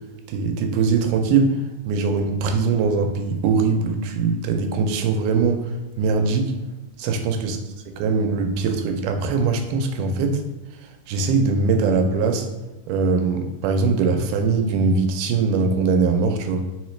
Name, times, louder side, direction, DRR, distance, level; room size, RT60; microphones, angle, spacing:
voice 1, 0.3-1.6 1.9-5.7 6.0-6.5 7.0-7.6 8.0-10.4 11.1-12.5 12.9-16.7, right 4 dB, 85° right, 5 dB, 2.1 m, -21 dB
4.4 x 3.9 x 3.1 m, 1.1 s
omnidirectional pair, 3.6 m